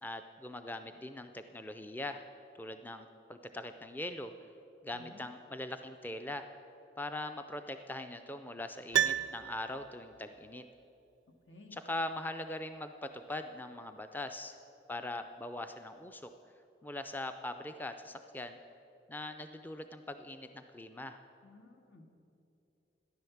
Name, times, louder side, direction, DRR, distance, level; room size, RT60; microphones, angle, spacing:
voice 1, 0.0-2.2 2.6-4.3 4.8-6.5 7.0-10.7 11.7-14.6 14.9-16.3 16.8-18.6 19.1-21.2, left 1 dB, 10° left, 8 dB, 0.4 m, -41 dB
voice 2, 4.9-5.3 11.5-11.8 21.4-22.1, left 2 dB, 80° left, 3 dB, 1.6 m, -55 dB
Piano, 8.9-10.2 10.5-10.6, right 10 dB, 85° right, 0.3 m, -32 dB
14.0 x 10.5 x 7.1 m, 2.9 s
head